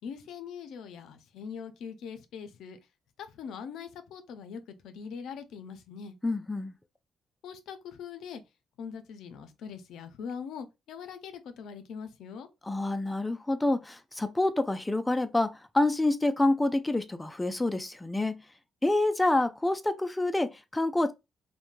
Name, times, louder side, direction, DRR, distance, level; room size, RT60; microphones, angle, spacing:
voice 1, 0.0-2.8 3.2-6.2 7.4-8.4 8.8-12.5, left 6 dB, 80° left, 0.5 m, -42 dB
voice 2, 6.2-6.7 12.6-18.4 18.8-21.1, left 2 dB, 10° left, 0.3 m, -27 dB
3.0 x 2.1 x 2.5 m
cardioid pair, 90°, 0 cm